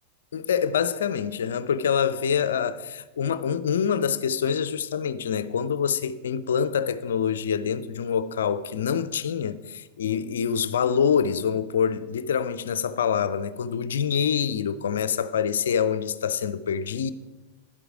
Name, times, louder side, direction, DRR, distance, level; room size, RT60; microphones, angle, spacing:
voice 1, 0.3-17.1, left 7 dB, 65° left, 0.5 m, -26 dB
11.0 x 7.9 x 4.9 m
figure-of-eight pair, 95°, 0 cm